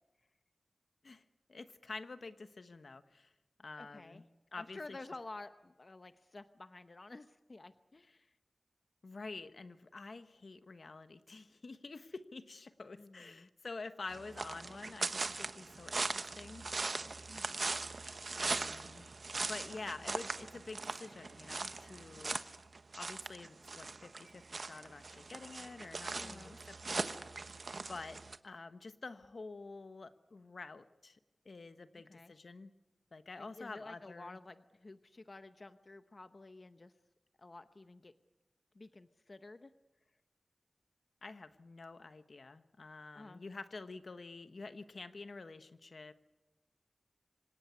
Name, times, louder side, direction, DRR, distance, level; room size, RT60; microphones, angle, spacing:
voice 1, 1.5-3.3 3.6-4.2 4.5-5.0 9.0-16.7 18.3-19.1 19.5-22.4 23.0-27.1 27.9-31.2 31.4-32.7 33.1-34.4 41.2-46.1, left 3 dB, 70° left, 11 dB, 1.1 m, -48 dB
voice 2, 3.8-4.3 4.5-8.4 13.0-13.5 17.3-17.6 26.2-26.6 31.9-32.3 33.4-36.9 37.4-38.1 38.7-39.7 43.1-43.4, left 2 dB, 50° left, 10 dB, 0.8 m, -51 dB
sound 1, 14.1-28.4, right 3 dB, 65° right, 1.1 m, -40 dB
26.0 x 18.0 x 9.6 m, 1.0 s
wide cardioid pair, 75°, 0 cm